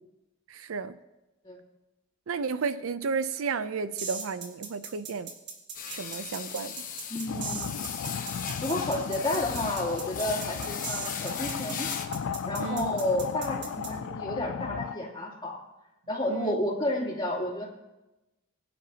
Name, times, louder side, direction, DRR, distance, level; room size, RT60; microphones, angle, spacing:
voice 1, 0.5-1.0 2.3-5.3 5.9-6.8 12.6-12.9 16.3-16.5, right 5 dB, 70° right, 14 dB, 0.5 m, -32 dB
sound 1, 4.0-13.9, right 6 dB, 55° right, 1.8 m, -39 dB
sound 2, 5.7-12.1, left 7 dB, 40° left, 1.1 m, -38 dB
voice 2, 7.1-8.0 8.6-11.9 12.5-15.6 16.1-17.7, left 1 dB, 25° left, -4 dB, 2.8 m, -31 dB
sound 3, 7.3-15.0, left 6 dB, 65° left, 0.4 m, -35 dB
21.0 x 10.5 x 2.8 m, 1.0 s
head